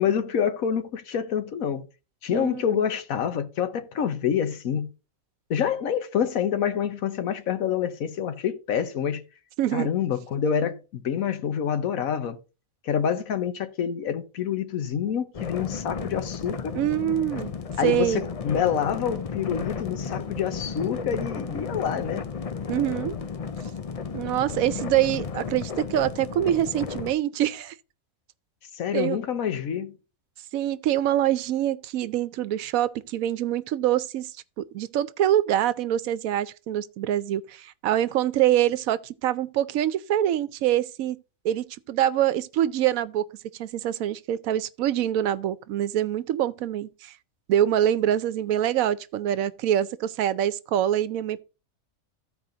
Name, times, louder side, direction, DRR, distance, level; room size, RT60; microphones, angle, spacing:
voice 1, 0.0-1.9 2.2-4.9 5.5-9.2 9.7-12.4 12.8-16.7 17.8-22.2 28.7-30.0, left 8 dB, 80° left, 1.3 m, -27 dB
voice 2, 2.3-2.8 9.6-9.9 16.7-17.5 17.8-18.2 22.7-23.2 24.1-27.8 28.9-29.2 30.5-34.3 34.6-41.2 41.4-43.2 43.6-47.1 47.5-51.4, right 11 dB, 80° right, 1.0 m, -25 dB
sound 1, 15.3-27.1, left 5 dB, 50° left, 0.4 m, -33 dB
14.0 x 4.8 x 3.8 m
omnidirectional pair, 1.4 m